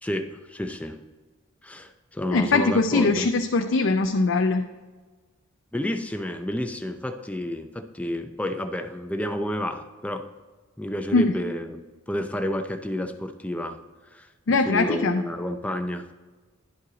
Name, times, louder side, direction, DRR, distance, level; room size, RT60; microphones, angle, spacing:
voice 1, 0.0-1.0 1.6-3.3 5.7-10.2 10.8-11.8 12.1-13.8 14.1-16.1, left 1 dB, 5° left, 7 dB, 0.5 m, -30 dB
voice 2, 2.3-4.6 11.1-11.4 14.5-15.2, left 3 dB, 60° left, 5 dB, 0.5 m, -21 dB
11.0 x 5.5 x 3.9 m, 1.3 s
head